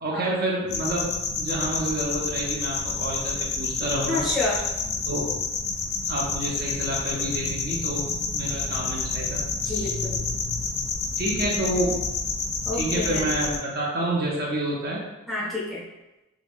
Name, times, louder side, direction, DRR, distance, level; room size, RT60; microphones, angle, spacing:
voice 1, 0.0-1.1 1.4-4.2 5.1-5.3 6.1-9.9 11.2-12.0 12.7-15.1, right 1 dB, 45° right, -3 dB, 0.5 m, -28 dB
sound 1, 0.7-13.6, left 4 dB, 50° left, 0.4 m, -29 dB
voice 2, 4.1-4.6 9.6-10.2 12.6-13.3 15.3-15.9, left 2 dB, ahead, -7 dB, 0.6 m, -29 dB
2.4 x 2.1 x 3.5 m, 1.0 s
head